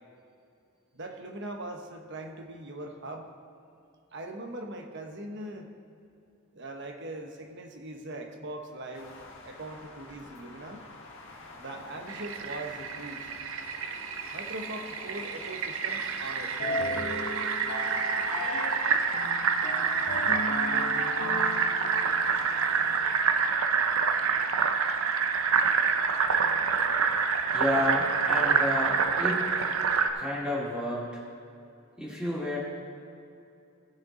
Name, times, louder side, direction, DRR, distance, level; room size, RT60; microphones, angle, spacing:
voice 1, 0.9-3.3 4.1-5.7 6.5-9.1 9.4-10.9 11.6-13.3 14.3-16.9, right 1 dB, 60° right, 4 dB, 1.1 m, -41 dB
sound 1, 8.9-23.0, left 2 dB, 60° left, 1.5 m, -48 dB
Fill (with liquid), 12.1-30.1, right 5 dB, 80° right, 0.7 m, -27 dB
sound 2, 16.6-22.3, left 1 dB, 80° left, 1.1 m, -35 dB
voice 2, 27.5-29.5 30.1-31.1 32.0-32.6, left 1 dB, 5° right, -6 dB, 2.3 m, -30 dB
16.5 x 6.6 x 3.9 m, 2.6 s
head